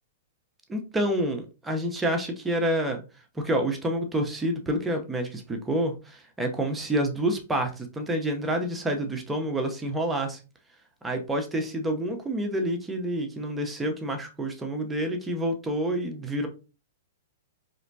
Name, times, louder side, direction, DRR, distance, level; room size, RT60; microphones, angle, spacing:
voice 1, 0.7-3.0 3.3-10.4 11.0-16.5, right 1 dB, 10° right, 4 dB, 0.7 m, -28 dB
4.1 x 3.0 x 2.7 m, 0.32 s
hypercardioid pair, 110°, 0 cm